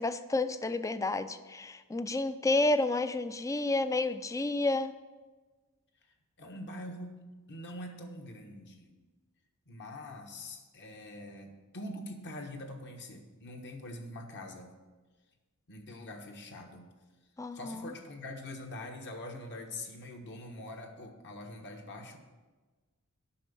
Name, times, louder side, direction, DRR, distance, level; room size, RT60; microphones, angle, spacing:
voice 1, 0.0-4.9 17.4-17.8, left 2 dB, 15° left, 12 dB, 0.4 m, -30 dB
voice 2, 6.4-7.2 7.5-8.9 9.7-14.7 15.7-16.9 17.5-22.2, left 1 dB, 55° left, 3 dB, 1.2 m, -44 dB
8.5 x 6.2 x 6.8 m, 1.3 s
head